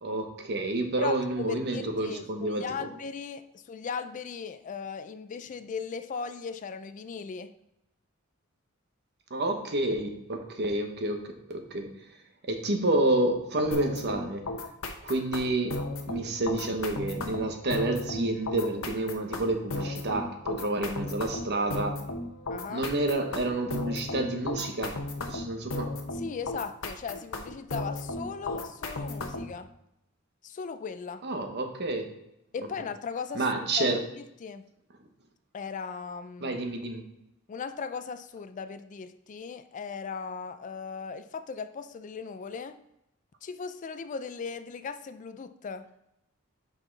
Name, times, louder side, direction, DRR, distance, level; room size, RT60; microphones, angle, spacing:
voice 1, 0.0-2.9 9.3-11.9 12.4-14.4 15.0-15.7 16.1-22.0 22.7-25.0 25.2-25.9 31.2-32.1 33.3-34.0 36.4-37.0, right 2 dB, 55° right, 1.0 m, -29 dB
voice 2, 1.0-7.5 22.5-22.9 26.1-29.7 30.4-31.2 32.5-33.5 33.8-34.7 35.5-36.6 37.5-42.8 43.4-45.9, left 5 dB, 40° left, 0.3 m, -38 dB
sound 1, 13.7-29.6, left 2 dB, 70° left, 0.9 m, -35 dB
6.0 x 5.6 x 3.9 m
head